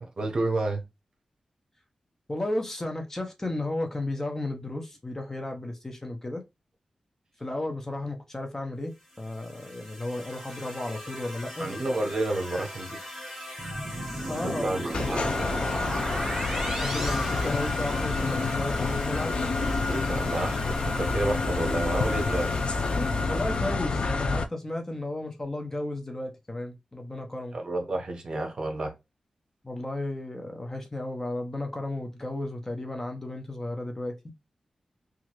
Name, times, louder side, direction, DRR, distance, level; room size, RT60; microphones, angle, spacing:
voice 1, 0.0-0.8 11.6-13.0 14.2-14.8 15.1-15.2 19.9-22.5 27.5-28.9, right 2 dB, 45° right, 1.0 m, -30 dB
voice 2, 2.3-6.4 7.4-11.7 14.2-14.7 16.8-19.4 23.3-27.5 29.6-34.1, left 2 dB, 20° left, 0.6 m, -33 dB
sound 1, 8.9-24.0, left 1 dB, ahead, 1.6 m, -41 dB
sound 2, 13.6-18.3, right 1 dB, 20° right, 1.0 m, -35 dB
sound 3, 14.9-24.5, left 3 dB, 60° left, 0.4 m, -28 dB
3.0 x 2.4 x 2.9 m
wide cardioid pair, 125°, 2 cm